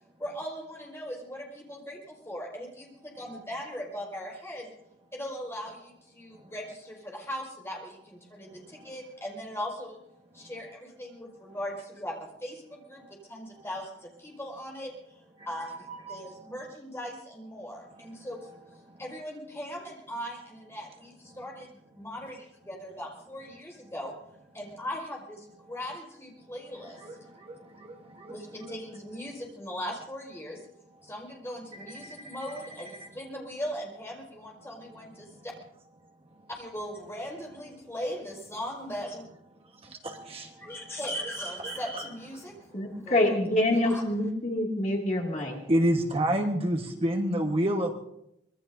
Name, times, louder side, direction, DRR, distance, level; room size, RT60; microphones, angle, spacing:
voice 1, 0.2-4.7 5.1-10.0 10.3-15.2 15.4-18.5 19.0-24.1 24.5-27.2 28.3-30.6 31.0-35.3 36.5-39.2 40.6-43.4 43.8-44.0, equal, 15° left, -2 dB, 5.0 m, -39 dB
voice 2, 15.5-16.5 18.9-19.0 26.8-28.3 28.6-28.7 31.8-32.7 33.0-33.1 35.2-35.4 39.8-40.7 41.6-42.1 42.3-42.4 42.8-42.9 45.7-47.9, right 1 dB, 30° right, 2 dB, 1.4 m, -31 dB
voice 3, 42.7-45.6, left 1 dB, 40° left, -1 dB, 2.5 m, -26 dB
25.5 x 20.5 x 2.7 m, 0.80 s
head